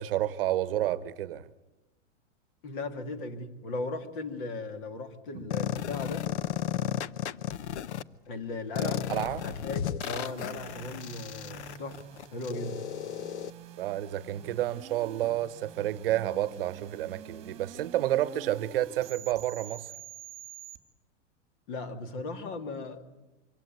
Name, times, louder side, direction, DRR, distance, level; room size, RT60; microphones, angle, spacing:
voice 1, 0.0-1.5 5.3-5.4 8.8-9.4 13.8-19.9, right 13 dB, 50° right, 1.1 m, -30 dB
voice 2, 2.6-6.3 8.3-9.1 9.4-12.0 12.3-12.8 21.7-23.0, left 3 dB, 40° left, 2.4 m, -37 dB
sound 1, 5.5-8.0 8.8-13.5, left 11 dB, 65° left, 0.9 m, -34 dB
sound 2, 10.0-20.8, right 8 dB, 15° right, 2.3 m, -48 dB
25.0 x 16.5 x 9.4 m
supercardioid pair, 165°, 37 cm